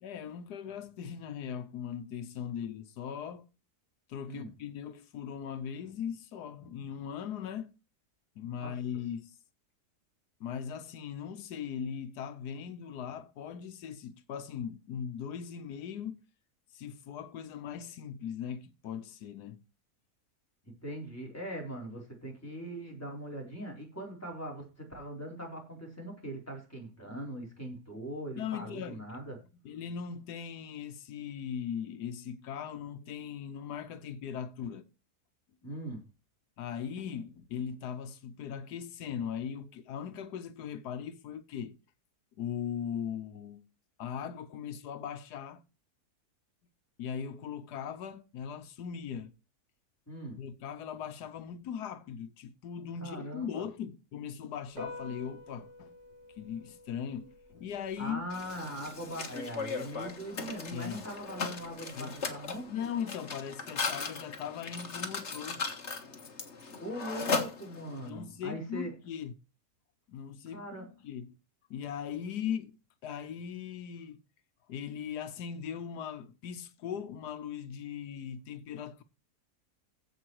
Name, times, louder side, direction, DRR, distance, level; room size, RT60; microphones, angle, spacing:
voice 1, 0.0-3.5 4.1-7.7 8.4-9.3 10.4-16.2 16.7-19.6 28.3-29.0 29.3-34.8 35.6-35.8 36.6-41.8 42.4-43.6 44.0-45.6 47.0-49.3 50.4-55.9 56.4-58.4 60.7-61.1 61.9-62.2 62.7-65.6 68.0-69.3 70.1-71.4 71.7-72.7 73.0-74.2 74.7-79.0, left 8 dB, 90° left, 1.4 m, -39 dB
voice 2, 20.8-29.4 35.6-36.0 50.1-50.4 53.0-53.7 58.0-62.7 66.7-68.9 70.5-70.9, right 1 dB, 10° left, 4.0 m, -41 dB
Piano, 54.7-62.6, left 2 dB, 70° right, 3.1 m, -51 dB
Mechanisms, 58.3-68.1, left 4 dB, 45° left, 1.8 m, -37 dB
15.5 x 5.4 x 4.7 m
omnidirectional pair, 1.7 m